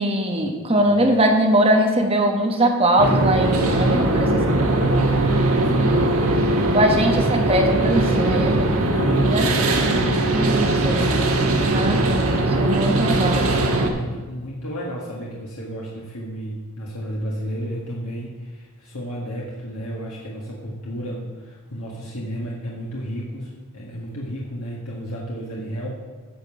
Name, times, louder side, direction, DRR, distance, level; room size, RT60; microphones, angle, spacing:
voice 1, 0.0-4.0 4.6-4.7 6.7-8.7 9.3-9.5 10.3-11.1 11.7-12.3 12.6-13.5, right 1 dB, 25° right, 3 dB, 1.1 m, -21 dB
sound 1, 3.0-13.9, right 2 dB, 75° right, 1.3 m, -20 dB
voice 2, 3.5-6.9 7.7-10.2 11.5-12.1 13.3-25.9, equal, 90° left, -4 dB, 1.6 m, -32 dB
10.5 x 5.3 x 7.0 m, 1.4 s
head